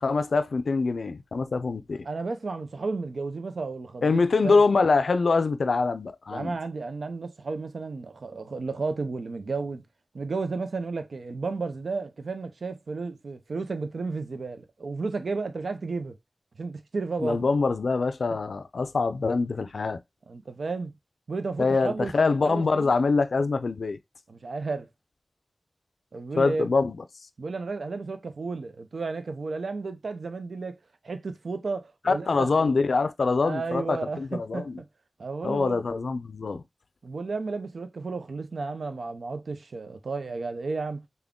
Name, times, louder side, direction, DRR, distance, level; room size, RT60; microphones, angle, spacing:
voice 1, 0.0-2.1 4.0-6.5 17.2-20.0 21.6-24.0 26.4-27.0 32.1-34.8 35.4-36.6, left 4 dB, 85° left, 0.4 m, -24 dB
voice 2, 2.0-4.6 6.3-9.8 10.1-16.1 16.6-17.5 20.3-20.9 21.3-22.1 22.4-22.9 24.3-24.9 26.1-26.7 27.4-30.8 31.0-32.8 33.4-34.6 35.2-35.8 37.0-41.1, right 4 dB, 80° right, 0.5 m, -33 dB
3.6 x 2.1 x 3.6 m
wide cardioid pair, 85°, 0 cm